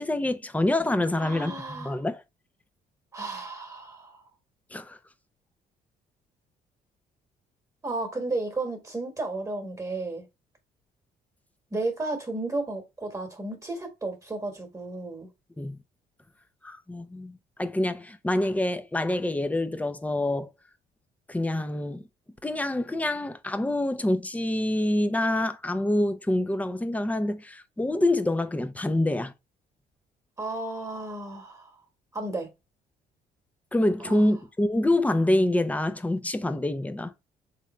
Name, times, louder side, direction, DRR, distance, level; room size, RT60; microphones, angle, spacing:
voice 1, 0.0-2.2 4.7-5.0 15.6-15.8 16.6-20.5 21.3-22.0 22.4-29.3 33.7-37.1, left 1 dB, 10° left, 0.6 m, -26 dB
voice 2, 1.2-2.0 3.1-4.2 7.8-10.3 11.7-15.3 30.4-31.8 32.1-32.5 34.0-34.2, right 2 dB, 20° right, 1.4 m, -33 dB
3.6 x 3.3 x 4.2 m
cardioid pair, 95°, 17 cm